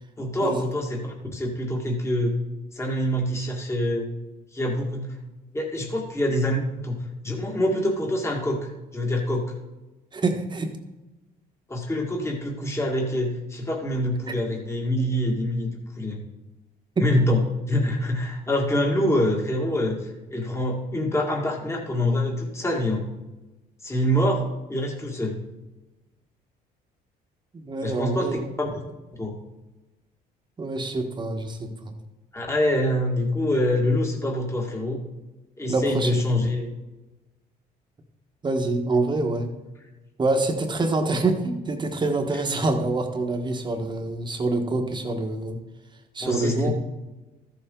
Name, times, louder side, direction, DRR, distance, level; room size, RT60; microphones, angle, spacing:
voice 1, 0.2-2.4 2.7-4.1 4.5-5.1 5.5-7.0 7.2-9.4 11.7-15.7 16.0-16.2 17.0-17.4 17.7-20.0 20.3-23.1 23.8-24.4 24.7-25.4 27.8-28.7 29.1-29.3 32.3-35.0 35.6-36.7 46.2-46.7, left 1 dB, 15° left, 0 dB, 1.9 m, -25 dB
voice 2, 10.1-10.7 14.3-14.4 27.5-28.5 30.6-31.9 35.7-36.2 38.4-39.5 40.2-45.6 46.1-46.7, right 2 dB, 25° right, 4 dB, 1.4 m, -26 dB
14.0 x 7.0 x 3.8 m, 1.1 s
cardioid pair, 110°, 17 cm